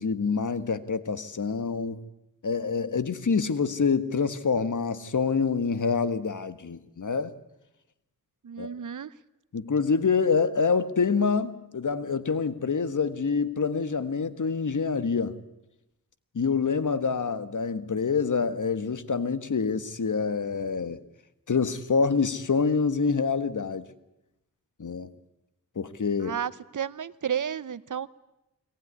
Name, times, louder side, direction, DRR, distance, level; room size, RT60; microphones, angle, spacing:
voice 1, 0.0-2.0 2.4-7.3 8.6-8.7 9.5-15.4 16.3-21.0 21.5-23.9 24.8-25.1 25.7-26.4, left 5 dB, 60° left, 1.5 m, -26 dB
voice 2, 8.4-9.1 26.2-28.1, right 8 dB, 60° right, 0.8 m, -32 dB
22.5 x 18.5 x 9.7 m
cardioid pair, 45°, 34 cm